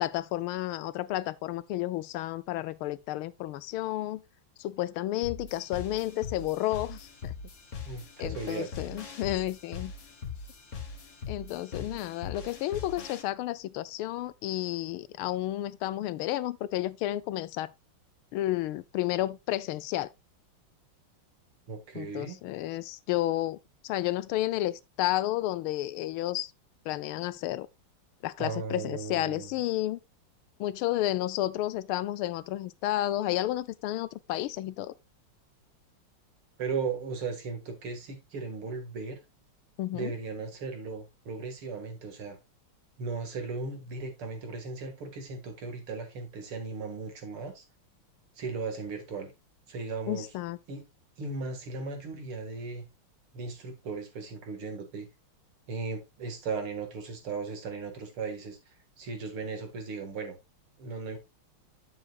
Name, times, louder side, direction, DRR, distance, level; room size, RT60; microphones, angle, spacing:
voice 1, 0.0-4.2 4.6-7.3 8.2-9.9 11.3-17.7 18.3-20.1 21.9-26.5 26.8-27.7 28.2-30.0 30.6-34.9 39.8-40.1 50.1-50.6, left 15 dB, 80° left, 1.4 m, -31 dB
sound 1, 5.2-13.2, left 6 dB, 40° left, 1.6 m, -41 dB
voice 2, 7.9-8.7 11.8-11.9 21.7-22.4 28.4-29.5 36.6-39.2 39.9-42.4 43.0-47.6 48.4-49.3 49.7-50.2 50.7-50.8 51.2-52.8 53.3-55.1 55.7-58.6 59.0-60.4 60.8-61.2, right 4 dB, 80° right, 2.9 m, -36 dB
9.7 x 7.3 x 2.4 m
omnidirectional pair, 2.3 m